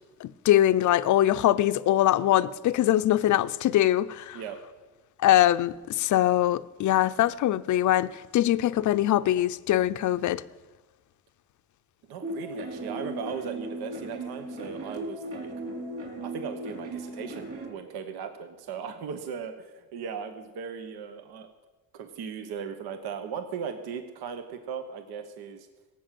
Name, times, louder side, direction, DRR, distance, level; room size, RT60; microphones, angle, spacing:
voice 1, 0.2-4.4 5.2-10.4, left 13 dB, 50° left, 0.6 m, -23 dB
voice 2, 12.1-15.5 16.2-21.5 21.9-25.7, right 7 dB, 75° right, 1.2 m, -37 dB
sound 1, 12.2-17.7, right 1 dB, 35° right, 4.8 m, -37 dB
17.0 x 7.8 x 7.6 m
cardioid pair, 130°, 38 cm